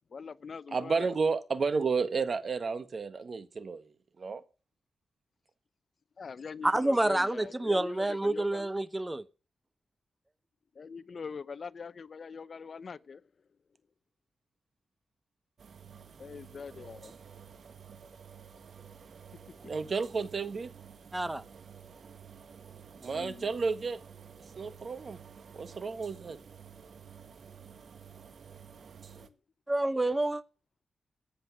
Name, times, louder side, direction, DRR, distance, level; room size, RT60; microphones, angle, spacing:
voice 1, 0.1-1.1 6.2-8.7 10.8-13.2 16.2-17.2 19.5-19.7 23.0-23.5 29.1-29.3, left 5 dB, 60° left, 0.6 m, -43 dB
voice 2, 0.7-3.9 4.2-4.4 19.6-20.7 23.0-24.0 24.6-25.2 25.5-26.4, right 4 dB, 55° right, 1.6 m, -31 dB
voice 3, 6.6-9.2 21.1-21.4 29.7-30.4, right 1 dB, 15° right, 1.0 m, -28 dB
sound 1, 15.6-29.3, right 7 dB, 70° right, 1.5 m, -51 dB
14.5 x 8.6 x 6.2 m
cardioid pair, 75°, 0 cm